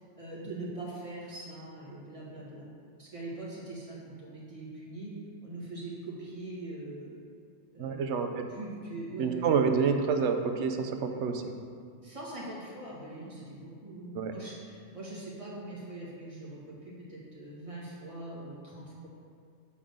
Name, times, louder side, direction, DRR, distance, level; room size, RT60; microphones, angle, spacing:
voice 1, 0.2-2.7 3.0-7.2 7.7-9.5 12.0-19.1, right 2 dB, 25° right, -7 dB, 1.6 m, -42 dB
voice 2, 7.8-8.5 9.2-11.5 14.1-14.3, right 5 dB, 70° right, 5 dB, 0.8 m, -28 dB
7.0 x 3.7 x 6.3 m, 2.2 s
omnidirectional pair, 1.4 m